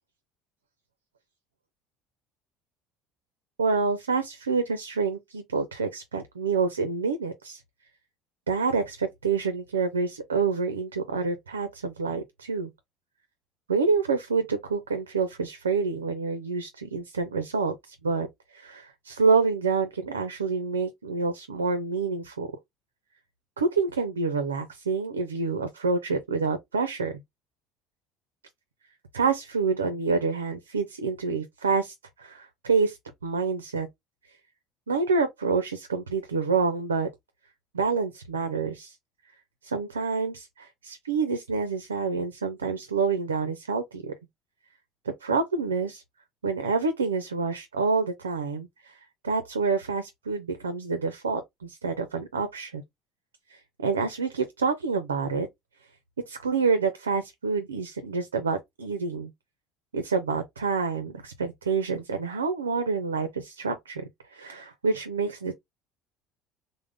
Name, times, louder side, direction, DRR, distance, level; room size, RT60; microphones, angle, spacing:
voice 1, 3.6-7.6 8.5-12.7 13.7-18.3 18.5-22.5 23.6-27.1 29.1-33.0 33.2-33.9 34.9-37.1 37.7-38.9 39.6-44.1 45.0-46.0 46.4-48.9 49.2-52.8 53.8-55.5 56.3-59.3 59.9-65.5, right 4 dB, 90° right, 0.4 m, -27 dB
3.5 x 2.0 x 3.3 m
hypercardioid pair, 65°, 0 cm